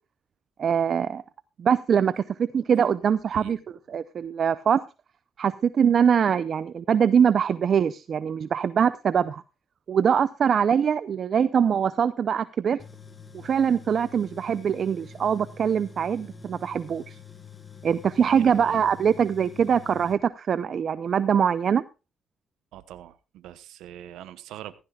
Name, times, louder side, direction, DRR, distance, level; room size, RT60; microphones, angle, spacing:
voice 1, 0.6-1.2 1.6-3.6 3.9-4.8 5.4-9.4 9.9-12.8 13.3-17.2 17.8-21.8, right 7 dB, 55° right, 15 dB, 0.6 m, -23 dB
Tools, 12.8-20.1, left 5 dB, 25° left, 1.6 m, -46 dB
voice 2, 18.3-18.8 22.7-24.8, right 12 dB, 85° right, 13 dB, 1.0 m, -43 dB
16.0 x 15.5 x 2.4 m, 0.30 s
cardioid pair, 90°, 0 cm